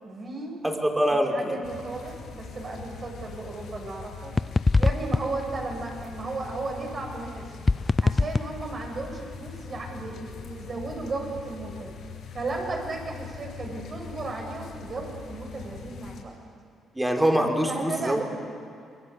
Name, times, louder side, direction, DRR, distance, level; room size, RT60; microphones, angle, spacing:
voice 1, 0.0-0.6 1.3-4.3 4.8-7.5 8.0-11.9 12.3-16.3 17.7-18.2, right 3 dB, 40° right, 1 dB, 7.7 m, -34 dB
voice 2, 0.6-1.6 16.9-18.2, equal, 10° right, 3 dB, 3.8 m, -24 dB
sound 1, 1.6-16.2, left 6 dB, 70° left, 5.7 m, -42 dB
sound 2, 4.4-5.9 7.7-9.1, left 3 dB, 25° left, 0.5 m, -24 dB
26.5 x 21.5 x 8.5 m, 2.4 s
cardioid pair, 90°, 0 cm